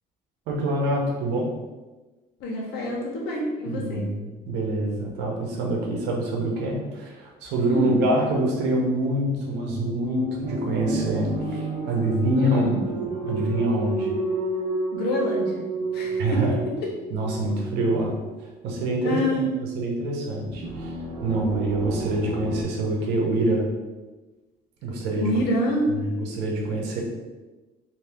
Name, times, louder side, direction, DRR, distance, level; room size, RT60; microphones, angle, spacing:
voice 1, 0.5-1.5 3.7-12.7 13.2-14.1 16.2-16.6 17.1-18.2 18.6-19.2 19.7-20.9 21.2-23.7 24.8-25.3 25.9-27.0, right 1 dB, 90° right, -1 dB, 0.9 m, -25 dB
voice 2, 2.4-4.1 7.6-8.0 12.4-12.8 14.9-15.6 15.9-16.4 16.8-16.9 19.0-19.4 25.2-25.9, left 1 dB, 80° left, -2 dB, 1.0 m, -26 dB
sound 1, 9.3-18.4 20.4-22.6, right 2 dB, 50° right, 1.1 m, -31 dB
2.8 x 2.8 x 3.4 m, 1.2 s
cardioid pair, 110°, 17 cm